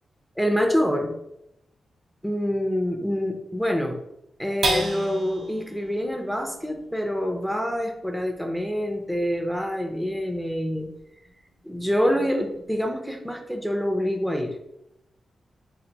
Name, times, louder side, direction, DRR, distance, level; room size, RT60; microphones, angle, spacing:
voice 1, 0.4-1.1 2.2-4.0 4.4-10.9 11.6-14.5, equal, ahead, 4 dB, 0.5 m, -26 dB
sound 1, 4.6-11.3 11.8-11.9 12.3-12.8, right 2 dB, 80° right, 1.4 m, -35 dB
3.8 x 2.5 x 4.4 m, 0.82 s
wide cardioid pair, 130°, 0 cm